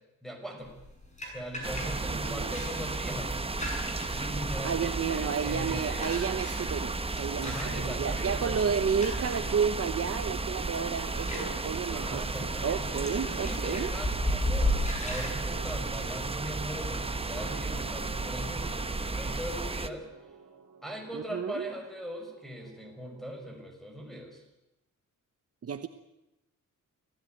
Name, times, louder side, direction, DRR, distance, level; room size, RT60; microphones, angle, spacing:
voice 1, 0.2-0.7 1.3-3.4 4.1-6.1 7.4-8.6 11.9-20.1 20.8-24.4, equal, ahead, 3 dB, 6.1 m, -40 dB
sound 1, 0.6-15.3, left 1 dB, 20° left, 7.0 m, -36 dB
sound 2, 1.6-19.9, right 3 dB, 20° right, 1.1 m, -34 dB
voice 2, 2.0-2.6 4.6-13.9 21.1-21.7 25.6-25.9, right 7 dB, 50° right, 10 dB, 1.1 m, -32 dB
sound 3, 7.2-23.2, right 5 dB, 75° right, 2.9 m, -49 dB
26.0 x 16.5 x 9.4 m, 0.92 s
wide cardioid pair, 155°, 31 cm